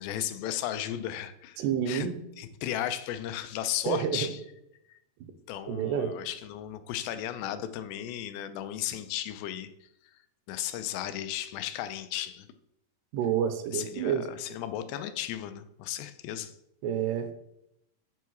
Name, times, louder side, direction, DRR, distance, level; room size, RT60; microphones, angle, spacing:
voice 1, 0.0-2.1 2.4-4.4 4.9-5.0 5.5-9.7 10.5-12.5 13.7-16.6, left 11 dB, 85° left, 11 dB, 2.7 m, -35 dB
voice 2, 1.6-2.2 3.9-4.3 5.2-5.3 5.7-6.1 13.1-14.3 16.8-17.3, right 8 dB, 85° right, 7 dB, 2.7 m, -29 dB
6.9 x 4.6 x 4.7 m, 0.81 s
omnidirectional pair, 4.8 m